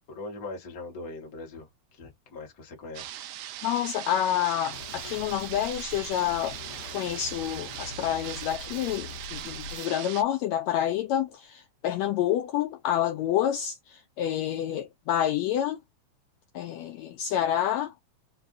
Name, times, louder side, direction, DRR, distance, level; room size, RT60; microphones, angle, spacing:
voice 1, 0.1-3.2, left 2 dB, 35° left, 1.5 m, -41 dB
sound 1, 2.9-10.2, right 12 dB, 80° right, 1.5 m, -40 dB
voice 2, 3.6-6.6 6.9-15.8 16.5-17.9, left 11 dB, 80° left, 1.7 m, -28 dB
sound 2, 4.7-9.9, left 4 dB, 55° left, 2.1 m, -43 dB
5.1 x 2.3 x 2.6 m
omnidirectional pair, 3.6 m